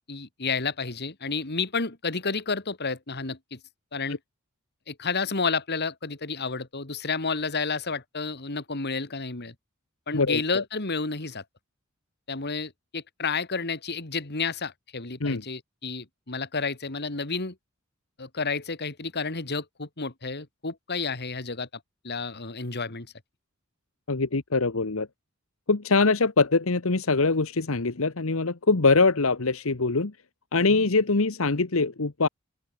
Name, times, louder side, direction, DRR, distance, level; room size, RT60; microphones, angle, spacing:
voice 1, 0.0-3.6 3.9-4.2 4.9-9.5 10.1-11.4 12.3-17.5 18.2-21.7 22.0-23.1, left 4 dB, 55° left, 2.6 m, -31 dB
voice 2, 10.1-10.6 15.2-15.4 24.1-25.1 25.7-30.1 30.5-32.3, left 3 dB, 70° left, 1.2 m, -23 dB
open air
head